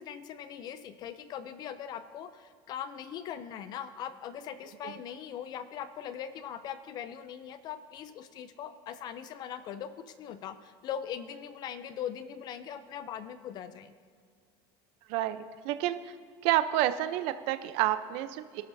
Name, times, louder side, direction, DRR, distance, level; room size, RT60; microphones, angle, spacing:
voice 1, 0.0-13.9, left 9 dB, 35° left, 12 dB, 0.5 m, -40 dB
voice 2, 15.1-16.1 16.4-18.6, right 13 dB, 50° right, 11 dB, 0.6 m, -29 dB
23.0 x 11.5 x 2.7 m, 2.1 s
cardioid pair, 165°, 13 cm